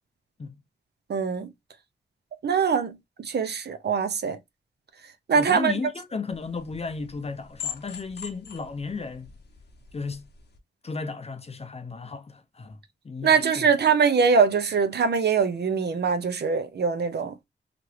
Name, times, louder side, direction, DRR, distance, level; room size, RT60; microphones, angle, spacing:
voice 1, 1.1-1.5 2.4-4.4 5.3-5.7 13.2-17.3, right 6 dB, 65° right, 0.6 m, -23 dB
voice 2, 5.3-9.3 9.9-10.3 10.8-12.8 13.0-13.7, left 4 dB, 35° left, 0.6 m, -34 dB
sound 1, 6.3-10.6, left 6 dB, 65° left, 0.8 m, -42 dB
2.9 x 2.5 x 3.1 m
cardioid pair, 75°, 19 cm